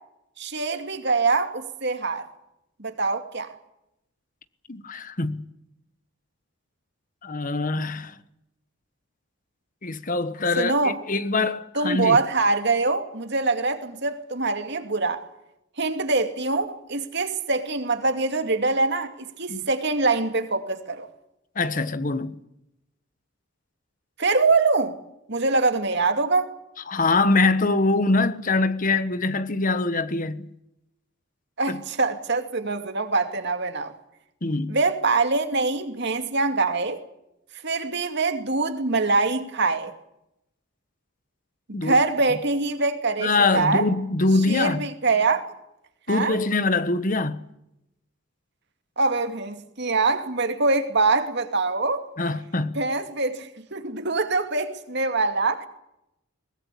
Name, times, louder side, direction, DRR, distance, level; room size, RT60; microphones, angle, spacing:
voice 1, 0.4-2.3 2.8-3.5 10.6-11.0 11.7-15.2 15.8-21.1 24.2-25.0 25.3-26.5 31.6-33.9 34.7-37.0 37.6-39.9 41.7-43.9 44.5-45.5 46.1-46.4 49.0-52.0 52.7-55.7, right 3 dB, 55° right, 2.5 m, -24 dB
voice 2, 4.7-5.4 7.2-8.1 9.8-12.2 19.5-19.6 21.5-22.4 26.9-30.5 31.7-31.8 34.4-34.8 41.7-42.0 43.2-44.8 46.1-47.4 52.2-52.8, left 3 dB, 40° left, 1.3 m, -23 dB
22.5 x 21.0 x 8.5 m
head